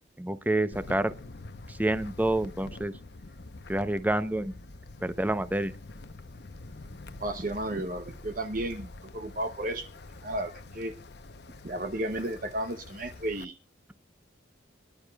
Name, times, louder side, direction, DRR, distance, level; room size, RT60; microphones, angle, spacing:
voice 1, 0.2-1.1 1.7-3.0 3.7-4.5 5.0-5.7, right 1 dB, 10° right, 13 dB, 0.6 m, -28 dB
Wind, 0.7-13.4, left 2 dB, 60° left, 0.8 m, -46 dB
voice 2, 7.2-9.9 10.2-10.9 11.6-13.5, right 1 dB, 45° right, 7 dB, 0.8 m, -33 dB
24.5 x 10.5 x 2.3 m, 0.30 s
head